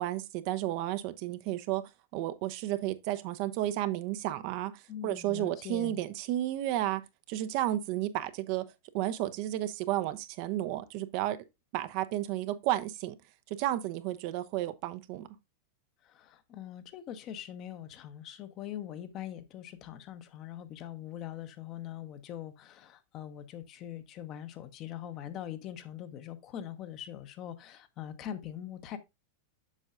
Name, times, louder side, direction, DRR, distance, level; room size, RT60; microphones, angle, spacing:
voice 1, 0.0-1.8 2.1-4.7 5.0-7.0 7.3-8.6 8.9-11.4 11.7-13.2 13.5-15.3, right 14 dB, 45° right, 0.5 m, -32 dB
voice 2, 4.9-6.0 16.0-29.0, left 11 dB, 35° left, 0.8 m, -42 dB
7.4 x 6.3 x 2.4 m
figure-of-eight pair, 90°, 0 cm